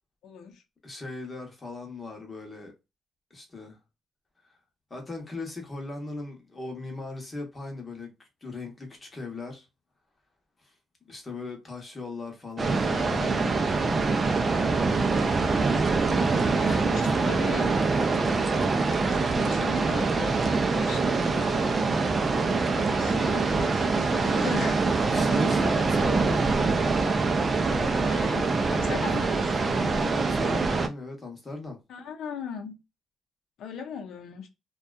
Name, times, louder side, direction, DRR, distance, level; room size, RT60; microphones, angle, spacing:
voice 1, 0.2-0.6 16.1-17.7 19.1-21.7 22.7-24.9 28.0-29.7 31.9-32.8 33.6-34.5, left 6 dB, 75° left, 0.6 m, -39 dB
voice 2, 0.8-2.7 3.3-3.8 4.4-4.6 4.9-9.7 10.6-10.7 11.1-14.4 15.7-17.6 25.1-26.5 28.9-29.1 29.6-31.8, left 3 dB, 20° left, 0.8 m, -39 dB
sound 1, 12.6-30.9, right 4 dB, 25° right, 0.4 m, -24 dB
2.6 x 2.2 x 2.2 m
cardioid pair, 165°, 0 cm